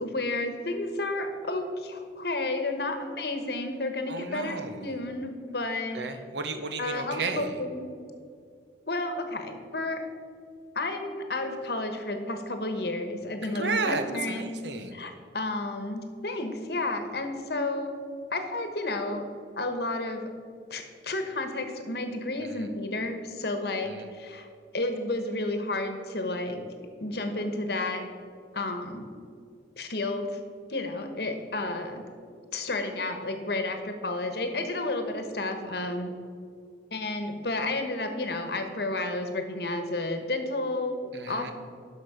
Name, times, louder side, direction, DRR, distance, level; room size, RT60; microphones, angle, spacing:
voice 1, 0.0-6.0 6.8-7.9 8.9-10.0 10.7-14.5 14.9-17.9 18.3-19.2 19.6-20.3 20.7-24.5 24.7-26.6 27.0-28.1 28.5-29.1 29.8-30.3 30.7-32.0 32.5-36.1 36.9-41.5, left 2 dB, 60° left, 6 dB, 1.1 m, -31 dB
voice 2, 4.1-5.0 5.9-7.6 13.4-15.1 22.4-22.7 23.8-24.1 41.1-41.5, right 3 dB, 75° right, 7 dB, 0.9 m, -33 dB
11.0 x 6.3 x 5.0 m, 2.2 s
head